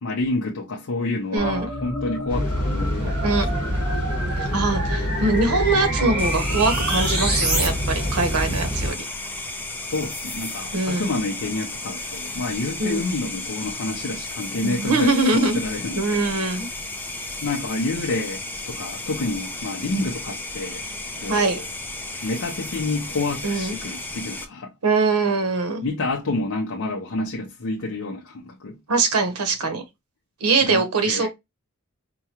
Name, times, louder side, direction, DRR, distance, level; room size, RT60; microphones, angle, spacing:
voice 1, 0.0-3.6 9.8-16.4 17.4-20.8 21.2-21.6 22.2-24.7 25.8-28.8 30.6-31.3, left 2 dB, 65° left, 0.6 m, -29 dB
voice 2, 1.3-1.7 3.2-3.5 4.4-9.0 10.7-11.1 12.8-13.0 14.6-15.6 16.0-16.7 21.3-21.6 23.4-23.8 24.8-25.9 28.9-29.8 30.4-31.3, right 3 dB, 85° right, 0.8 m, -22 dB
sound 1, 1.4-7.7, right 1 dB, 45° right, 2.0 m, -28 dB
sound 2, 2.3-8.9, equal, 20° right, 2.7 m, -26 dB
sound 3, 6.2-24.4, left 2 dB, 10° left, 0.5 m, -34 dB
4.7 x 2.2 x 2.8 m
head